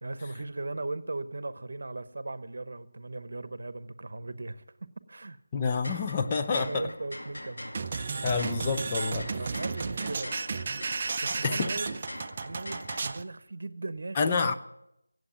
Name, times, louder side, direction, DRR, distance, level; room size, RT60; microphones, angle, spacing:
voice 1, 0.0-4.6 5.1-5.4 6.5-7.7 9.3-10.8 11.2-14.2, right 2 dB, 55° right, 1.0 m, -38 dB
voice 2, 5.5-6.9 8.2-9.3 11.4-11.7 14.2-14.6, left 4 dB, 20° left, 0.6 m, -28 dB
sound 1, 5.6-13.0, left 1 dB, 75° left, 2.4 m, -43 dB
sound 2, 7.7-13.2, right 4 dB, 30° right, 0.6 m, -33 dB
16.5 x 7.9 x 7.1 m
figure-of-eight pair, 170°, 0 cm